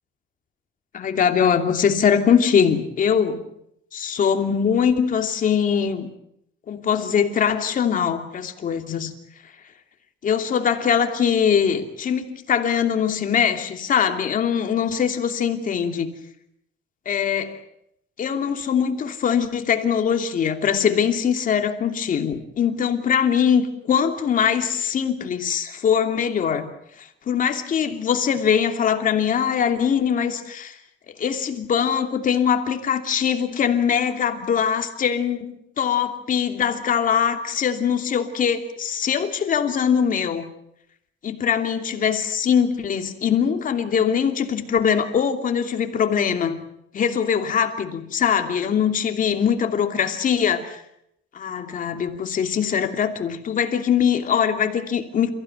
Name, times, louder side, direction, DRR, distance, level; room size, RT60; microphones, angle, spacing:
voice 1, 0.9-3.4 3.9-6.1 6.7-9.1 10.2-16.1 17.1-17.6 18.2-26.7 27.0-30.8 31.1-40.5 41.2-46.6 46.9-50.8 51.3-55.3, left 7 dB, 40° left, 5 dB, 2.8 m, -22 dB
30.0 x 16.0 x 9.5 m, 0.77 s
cardioid pair, 175°, 20 cm